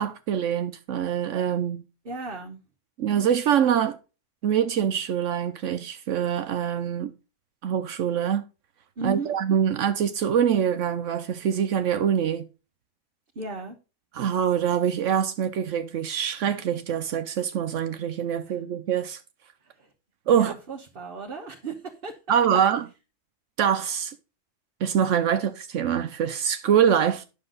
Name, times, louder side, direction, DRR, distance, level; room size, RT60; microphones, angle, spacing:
voice 1, 0.0-1.8 3.0-4.0 4.4-7.1 7.6-8.4 9.0-12.4 14.1-19.2 20.3-20.5 22.3-22.8 23.6-24.1 24.8-27.2, right 8 dB, 75° right, 1.0 m, -24 dB
voice 2, 2.0-2.6 9.0-9.3 13.3-13.8 18.4-18.6 19.6-19.9 20.3-22.2, right 3 dB, 45° right, 1.3 m, -35 dB
9.8 x 6.5 x 3.9 m
omnidirectional pair, 1.3 m